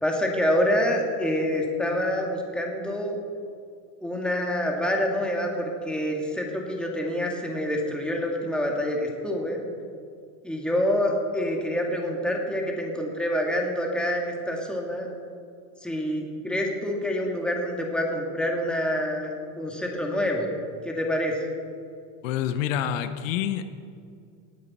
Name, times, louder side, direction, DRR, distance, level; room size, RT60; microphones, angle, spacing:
voice 1, 0.0-3.2 4.0-9.7 10.4-15.1 15.8-20.6 20.8-21.5, equal, ahead, 0 dB, 1.9 m, -27 dB
voice 2, 22.2-23.6, left 10 dB, 90° left, 9 dB, 1.0 m, -27 dB
18.5 x 9.8 x 4.2 m, 2.3 s
supercardioid pair, 135°, 37 cm